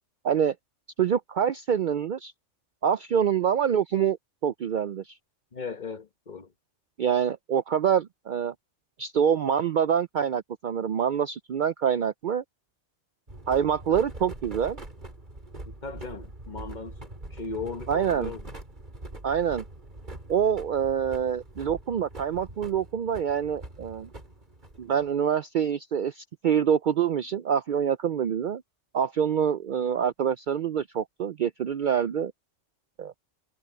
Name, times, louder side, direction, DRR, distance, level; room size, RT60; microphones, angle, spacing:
voice 1, 0.2-0.5 1.0-2.3 2.8-4.2 4.4-5.2 7.0-8.5 9.0-12.4 13.5-14.8 17.9-18.3 19.2-19.6 20.3-24.1 24.8-28.6 28.9-32.3 33.0-33.1, right 8 dB, 60° right, 0.5 m, -26 dB
voice 2, 5.5-6.5 15.8-17.0 17.3-18.5, left 4 dB, 40° left, 1.2 m, -37 dB
sound 1, 13.3-25.1, right 2 dB, 40° right, 3.5 m, -43 dB
omnidirectional pair, 1.2 m